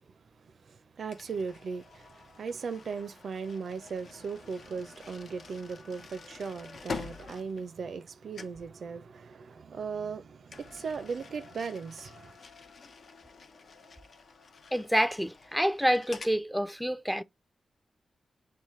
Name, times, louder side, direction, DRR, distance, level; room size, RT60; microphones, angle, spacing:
voice 1, 0.7-12.3, right 5 dB, 70° right, 0.4 m, -38 dB
sound 1, 1.1-8.1 8.3-8.7 10.5-16.4, left 4 dB, 65° left, 0.6 m, -47 dB
voice 2, 14.7-17.2, equal, ahead, 0.4 m, -27 dB
5.6 x 2.1 x 3.1 m
cardioid pair, 50°, 0 cm